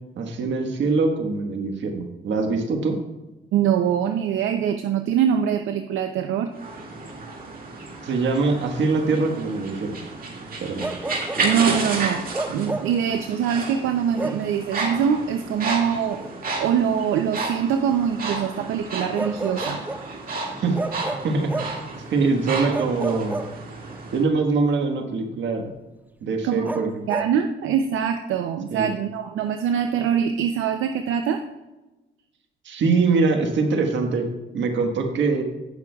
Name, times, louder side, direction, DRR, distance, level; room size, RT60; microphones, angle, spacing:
voice 1, 0.2-3.0 8.0-10.0 10.6-10.9 20.6-20.8 21.2-21.8 22.1-23.4 24.1-25.7 26.2-27.0 28.7-28.9 32.6-34.3 34.5-35.4, right 4 dB, 65° right, 4 dB, 1.4 m, -23 dB
voice 2, 3.5-6.5 11.4-16.2 16.6-19.8 26.4-31.4, right 8 dB, 85° right, 7 dB, 0.6 m, -23 dB
sound 1, 6.5-24.2, right 3 dB, 45° right, 2.0 m, -32 dB
Bark, 10.8-11.5 12.3-13.0 14.1-14.5 16.2-16.4 19.1-20.1 20.7-21.9 22.7-24.0 26.6-27.4, right 2 dB, 10° right, 0.5 m, -31 dB
17.5 x 6.1 x 2.3 m, 1.1 s
cardioid pair, 90°, 20 cm